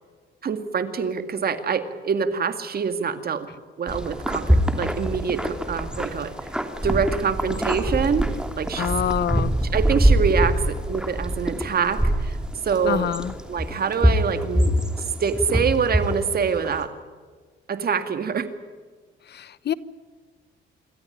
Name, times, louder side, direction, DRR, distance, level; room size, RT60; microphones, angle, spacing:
voice 1, 0.4-3.5 3.8-6.3 6.8-8.2 8.6-8.9 9.7-12.4 12.6-13.1 13.5-14.7 15.2-16.9 17.7-18.5, right 6 dB, 50° right, 9 dB, 2.1 m, -25 dB
sound 1, 3.9-16.8, right 1 dB, 5° right, 2.9 m, -24 dB
voice 2, 8.8-9.5 12.8-13.3 19.3-19.7, left 9 dB, 55° left, 17 dB, 1.0 m, -26 dB
27.0 x 14.0 x 10.0 m, 1.5 s
cardioid pair, 90°, 20 cm